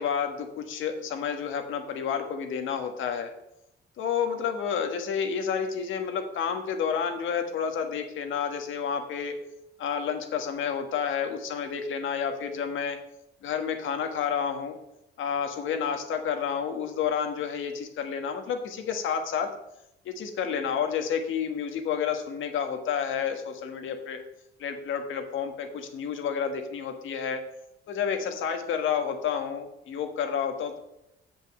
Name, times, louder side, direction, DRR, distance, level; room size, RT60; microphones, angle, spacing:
voice 1, 0.0-3.3 4.0-9.3 9.8-13.0 13.4-14.8 15.2-19.5 20.0-24.2 24.6-27.4 27.9-30.8, left 7 dB, 80° left, 6 dB, 1.5 m, -30 dB
7.6 x 5.4 x 7.4 m, 0.84 s
cardioid pair, 90°, 20 cm